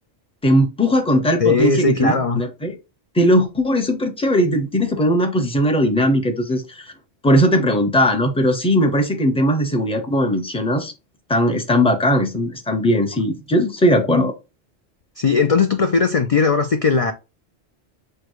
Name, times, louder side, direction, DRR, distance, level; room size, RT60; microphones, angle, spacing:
voice 1, 0.4-2.7 3.1-6.9 7.2-10.9 11.3-14.3, equal, 5° left, 0.7 m, -18 dB
voice 2, 1.4-2.4 15.2-17.1, left 4 dB, 50° left, 0.4 m, -18 dB
6.6 x 2.3 x 3.0 m
omnidirectional pair, 1.2 m